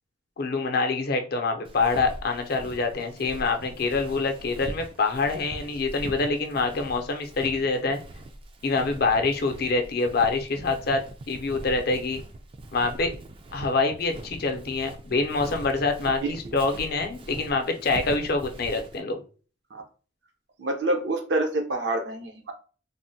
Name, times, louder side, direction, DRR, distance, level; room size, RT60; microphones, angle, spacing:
voice 1, 0.4-8.0 8.6-11.0 11.3-12.2 12.7-13.1 13.5-19.2, left 3 dB, 55° left, 5 dB, 0.5 m, -26 dB
Walk footsteps, 1.7-19.0, right 1 dB, 30° right, 0.3 m, -41 dB
voice 2, 16.2-16.5 19.7-19.8 20.6-22.5, right 2 dB, 70° right, 4 dB, 0.7 m, -27 dB
3.4 x 2.1 x 2.6 m, 0.38 s
head